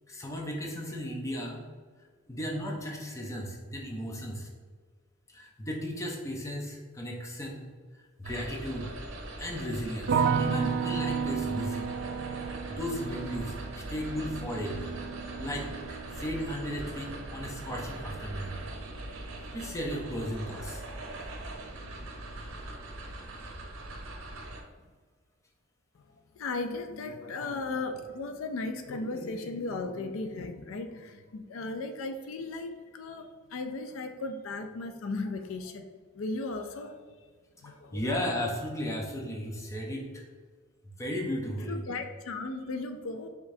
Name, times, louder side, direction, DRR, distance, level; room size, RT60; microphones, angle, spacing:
voice 1, 0.1-1.7 2.3-4.5 5.3-7.7 8.2-8.9 9.4-11.9 12.5-14.9 15.4-18.6 19.5-20.8 37.6-40.2 41.0-41.8, equal, 15° left, 0 dB, 0.6 m, -35 dB
sound 1, 8.2-24.6, right 1 dB, 85° right, 0.7 m, -41 dB
sound 2, 10.1-21.1 21.4-22.2, right 6 dB, 55° right, 0.3 m, -34 dB
voice 2, 26.3-37.0 37.6-38.0 41.6-43.3, left 3 dB, 85° left, 7 dB, 0.4 m, -36 dB
4.9 x 3.7 x 2.7 m, 1.5 s
head